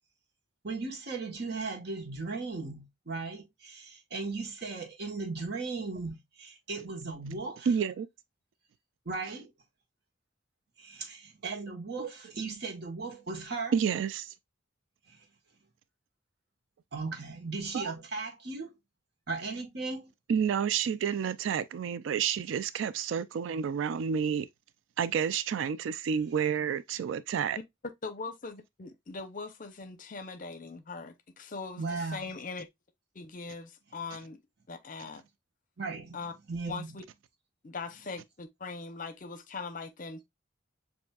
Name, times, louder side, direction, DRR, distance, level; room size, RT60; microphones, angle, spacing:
voice 1, 0.6-7.7 9.0-9.5 10.8-13.7 15.1-15.3 16.9-18.8 19.3-20.1 31.8-32.3 35.8-36.2 36.5-36.9, right 3 dB, 60° right, 1.3 m, -37 dB
voice 2, 7.7-8.1 12.0-12.1 13.7-14.3 17.7-17.9 20.3-24.5 25.0-27.6, right 7 dB, 80° right, 0.3 m, -30 dB
voice 3, 28.0-32.7 33.1-34.4 34.7-35.2 36.1-36.3 36.7-37.0 37.6-40.2, left 4 dB, 45° left, 0.7 m, -41 dB
6.9 x 2.7 x 2.3 m
head